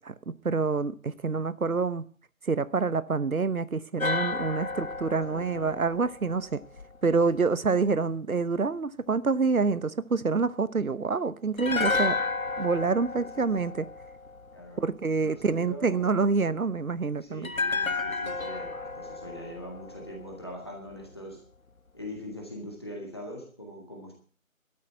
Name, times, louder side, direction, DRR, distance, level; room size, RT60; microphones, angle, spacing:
voice 1, 0.4-2.0 2.4-6.6 7.0-12.2 12.6-13.9 14.8-17.5, right 4 dB, 85° right, 1.0 m, -27 dB
sound 1, 4.0-7.2 11.6-14.8 17.4-20.7 20.9-21.1, left 3 dB, 75° left, 1.4 m, -32 dB
voice 2, 5.3-5.8 7.0-7.4 13.2-13.5 14.5-14.9 15.2-16.2 17.0-21.4 21.9-24.1, left 1 dB, 20° left, 1.8 m, -42 dB
12.5 x 8.2 x 8.1 m
figure-of-eight pair, 175°, 41 cm